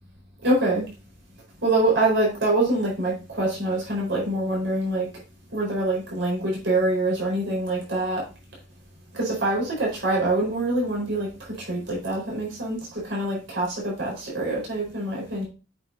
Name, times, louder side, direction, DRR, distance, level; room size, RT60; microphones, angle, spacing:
voice 1, 0.4-0.9 1.6-5.1 5.5-8.3 9.1-15.5, right 2 dB, 65° right, -3 dB, 4.3 m, -25 dB
8.3 x 7.5 x 2.6 m, 0.33 s
head